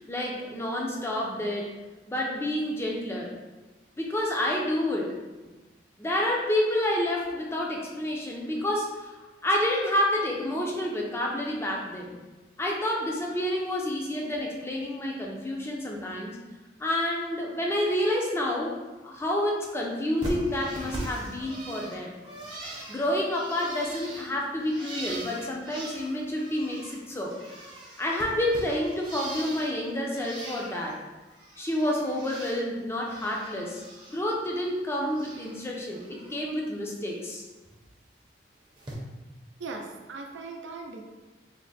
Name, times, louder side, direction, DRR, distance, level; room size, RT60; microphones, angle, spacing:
voice 1, 0.0-1.7 2.1-3.3 4.0-5.2 5.4-5.5 6.0-9.1 9.4-12.2 12.6-16.4 16.8-18.8 19.0-22.1 22.9-27.4 28.0-31.0 31.6-33.8 34.1-37.5, left 1 dB, 15° left, -2 dB, 0.4 m, -29 dB
Bird, 20.2-27.0 27.2-29.8 30.1-30.9 31.3-32.6 32.9-34.2 34.5-35.6 35.9-36.4 37.6-37.8 38.8-38.9, right 1 dB, 25° right, 0.6 m, -41 dB
voice 2, 39.6-41.0, right 3 dB, 85° right, 3 dB, 0.5 m, -39 dB
3.4 x 2.1 x 3.9 m, 1.2 s
head